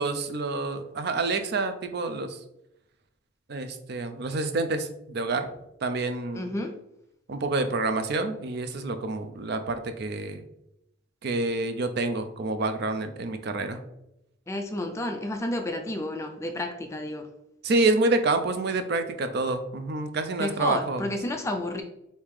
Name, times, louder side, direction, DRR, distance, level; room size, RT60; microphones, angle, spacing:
voice 1, 0.0-2.4 3.5-5.5 5.8-6.5 7.3-10.4 11.2-13.8 17.6-21.0, right 3 dB, 50° right, 8 dB, 0.4 m, -28 dB
voice 2, 6.3-6.8 14.5-17.3 20.4-21.8, left 1 dB, 15° left, 4 dB, 0.3 m, -31 dB
3.5 x 2.8 x 4.6 m, 0.83 s
head